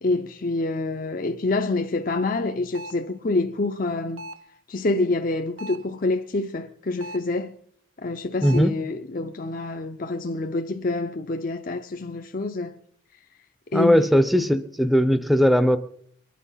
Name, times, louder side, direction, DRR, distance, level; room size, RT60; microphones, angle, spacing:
voice 1, 0.0-4.3 4.7-7.5 8.0-12.8 13.7-14.1 14.3-14.5, left 2 dB, 40° left, 0.6 m, -27 dB
sound 1, 2.8-3.1 4.2-4.6 5.6-6.0 7.0-7.4 8.4-8.8, right 1 dB, 75° right, 0.8 m, -39 dB
voice 2, 8.4-8.7 13.7-15.8, equal, ahead, 0.6 m, -19 dB
23.0 x 10.5 x 5.6 m
head